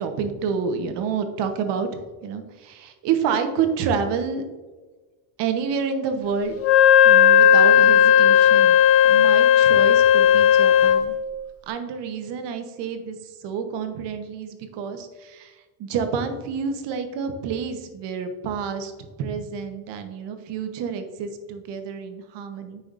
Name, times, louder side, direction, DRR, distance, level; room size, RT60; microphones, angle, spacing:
voice 1, 0.0-1.9 2.2-4.4 5.4-6.6 7.0-11.1 11.7-13.2 13.4-15.5 15.8-18.9 19.2-22.8, right 6 dB, 65° right, 7 dB, 1.1 m, -28 dB
Wind instrument woodwind instrument, 6.6-11.1, left 9 dB, 30° left, 0.4 m, -15 dB
8.4 x 5.8 x 2.5 m, 1.3 s
cardioid pair, 145°, 46 cm